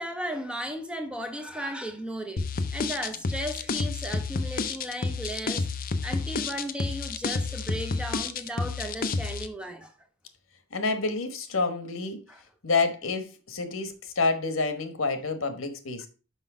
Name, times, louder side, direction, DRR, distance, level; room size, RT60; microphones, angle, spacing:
voice 1, 0.0-2.5 2.7-5.7 6.0-9.9 12.3-12.4, equal, 5° right, 0.7 m, -35 dB
sound 1, 2.4-9.5, left 4 dB, 45° left, 0.6 m, -30 dB
voice 2, 10.7-12.2 12.6-16.1, left 3 dB, 70° left, 1.2 m, -28 dB
5.8 x 5.3 x 4.9 m
head